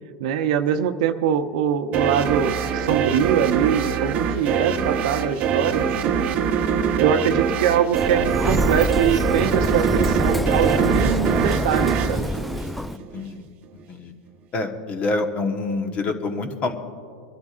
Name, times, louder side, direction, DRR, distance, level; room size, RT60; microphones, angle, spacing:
voice 1, 0.2-6.2 7.0-12.3, right 8 dB, 65° right, 7 dB, 0.8 m, -23 dB
sound 1, 1.9-13.2, right 7 dB, 40° right, 0.9 m, -23 dB
voice 2, 6.0-6.4 12.9-13.5 13.9-14.1 14.5-16.8, left 3 dB, 35° left, 5 dB, 1.4 m, -27 dB
Sliding door, 7.9-13.0, left 1 dB, ahead, 0.3 m, -25 dB
24.5 x 12.0 x 2.6 m, 2.3 s
supercardioid pair, 125°, 4 cm